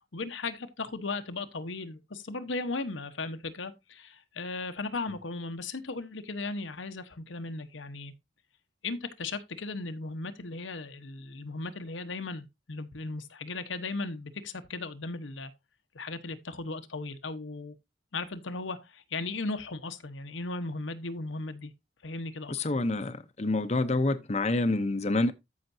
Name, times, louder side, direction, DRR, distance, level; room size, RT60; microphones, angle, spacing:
voice 1, 0.1-8.1 8.8-15.5 15.9-17.7 18.1-21.7 22.0-22.5, left 3 dB, 85° left, 1.1 m, -36 dB
voice 2, 22.5-25.3, left 2 dB, 35° left, 0.7 m, -27 dB
13.5 x 5.8 x 2.7 m
head